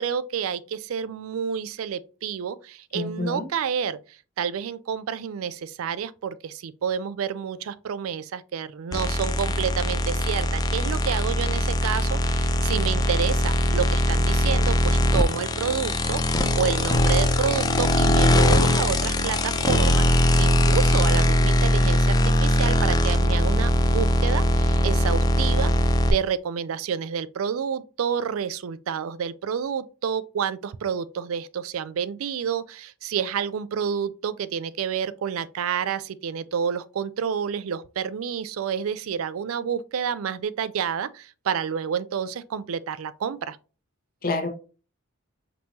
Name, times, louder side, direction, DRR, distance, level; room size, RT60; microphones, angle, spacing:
voice 1, 0.0-4.0 4.4-16.2 16.6-25.7 26.1-43.6, right 7 dB, 80° right, 0.4 m, -29 dB
voice 2, 2.9-3.5 44.2-44.5, left 3 dB, 45° left, 0.9 m, -27 dB
sound 1, 8.9-26.1, left 1 dB, 20° left, 0.4 m, -21 dB
5.3 x 2.9 x 2.8 m
head